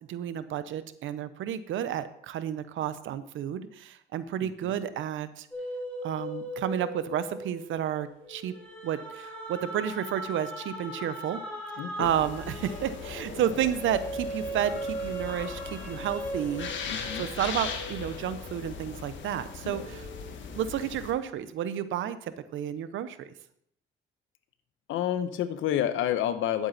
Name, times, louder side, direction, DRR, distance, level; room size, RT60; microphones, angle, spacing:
voice 1, 0.1-5.5 6.0-8.5 8.8-11.4 12.0-16.7 17.1-20.0 20.5-23.3, right 10 dB, 80° right, 13 dB, 0.8 m, -31 dB
voice 2, 4.4-4.7 11.8-12.1 13.4-13.5 15.9-16.1 16.9-17.3 19.6-19.9 24.9-26.7, left 11 dB, 85° left, 11 dB, 0.9 m, -30 dB
sound 1, 5.5-19.2 19.7-21.3, right 1 dB, 5° left, 5.0 m, -39 dB
sound 2, 12.0-21.1, left 6 dB, 70° left, 1.5 m, -39 dB
10.5 x 8.6 x 4.1 m, 0.69 s
cardioid pair, 90°, 20 cm